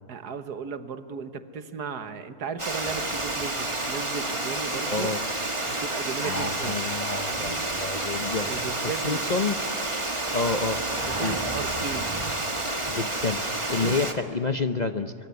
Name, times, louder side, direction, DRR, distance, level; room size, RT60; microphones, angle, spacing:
voice 1, 0.1-5.1 5.7-6.8 8.5-9.2 11.0-12.2 13.7-14.0, right 6 dB, 80° right, 10 dB, 1.8 m, -36 dB
Water, 2.6-14.1, right 2 dB, 20° right, 1.7 m, -29 dB
voice 2, 4.8-5.2 6.2-9.6 10.3-10.8 11.2-11.4 12.9-15.3, left 4 dB, 40° left, 8 dB, 0.7 m, -29 dB
24.5 x 24.0 x 9.5 m, 2.3 s
omnidirectional pair, 1.7 m